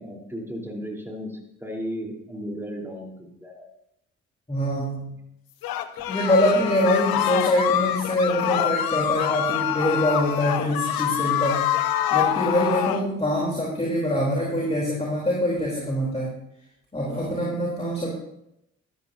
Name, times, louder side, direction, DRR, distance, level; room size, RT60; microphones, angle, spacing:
voice 1, 0.0-3.7, equal, 5° right, -1 dB, 4.0 m, -35 dB
voice 2, 4.5-5.2 6.1-11.7 12.1-16.3 16.9-18.1, left 1 dB, 15° left, -3 dB, 3.7 m, -24 dB
sound 1, 5.6-13.0, left 11 dB, 70° left, 0.8 m, -25 dB
13.0 x 12.0 x 2.8 m, 0.81 s
supercardioid pair, 55°, 37 cm